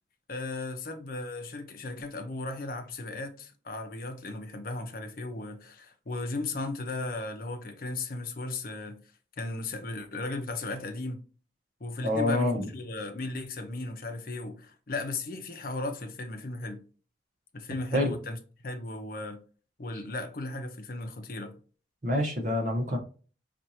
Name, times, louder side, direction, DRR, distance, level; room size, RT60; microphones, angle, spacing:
voice 1, 0.3-9.0 9.4-11.2 11.8-16.8 17.5-18.4 18.6-19.4 19.8-21.6, left 2 dB, 50° left, 0.7 m, -36 dB
voice 2, 12.0-12.7 17.9-18.2 22.0-23.0, left 1 dB, 45° right, 0.9 m, -27 dB
4.4 x 2.5 x 2.7 m
head